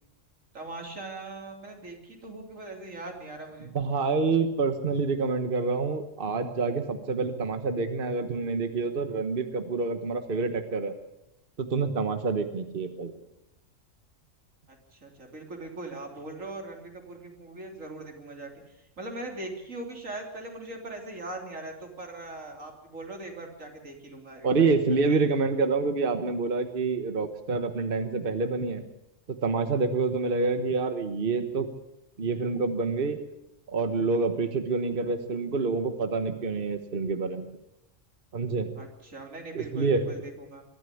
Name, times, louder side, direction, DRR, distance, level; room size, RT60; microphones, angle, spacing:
voice 1, 0.5-3.7 14.7-24.7 25.1-25.2 38.8-40.6, right 2 dB, 85° right, 2 dB, 3.7 m, -41 dB
voice 2, 3.7-10.9 11.6-13.1 24.4-28.8 29.3-31.7 32.2-33.2 33.7-37.5 38.3-38.7 39.5-40.1, right 4 dB, 45° right, 8 dB, 1.4 m, -27 dB
23.0 x 13.5 x 8.4 m, 0.85 s
omnidirectional pair, 1.3 m